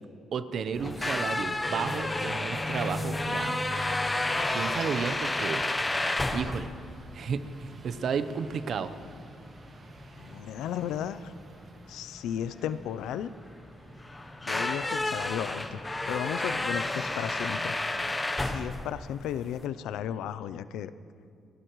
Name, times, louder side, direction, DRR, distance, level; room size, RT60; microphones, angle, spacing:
voice 1, 0.3-3.6 4.5-6.7 7.1-8.9, right 6 dB, 60° right, 12 dB, 0.8 m, -33 dB
sound 1, 0.7-19.7, left 2 dB, 20° left, 0.8 m, -32 dB
sound 2, 1.0-17.8, right 4 dB, 45° right, 1.8 m, -50 dB
voice 2, 10.2-11.3 11.9-13.3 14.4-15.8 16.1-17.8 18.4-20.9, left 10 dB, 85° left, 15 dB, 0.4 m, -34 dB
30.0 x 11.0 x 3.1 m, 2.4 s
cardioid pair, 90°, 0 cm